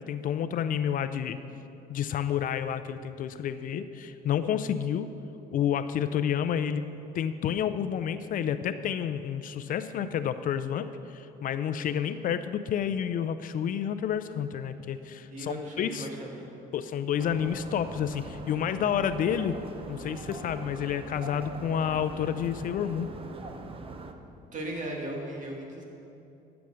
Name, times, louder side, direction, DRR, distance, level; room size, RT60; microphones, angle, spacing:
voice 1, 0.0-1.4 1.9-5.1 5.5-6.9 7.1-16.1 16.7-19.6 19.9-23.1, left 9 dB, 55° left, 11 dB, 0.5 m, -30 dB
voice 2, 15.3-16.5 24.5-25.8, right 1 dB, 50° right, 0 dB, 2.2 m, -37 dB
sound 1, 17.2-24.1, right 3 dB, 35° right, 0.8 m, -42 dB
12.0 x 7.0 x 6.4 m, 2.9 s
cardioid pair, 110°, 17 cm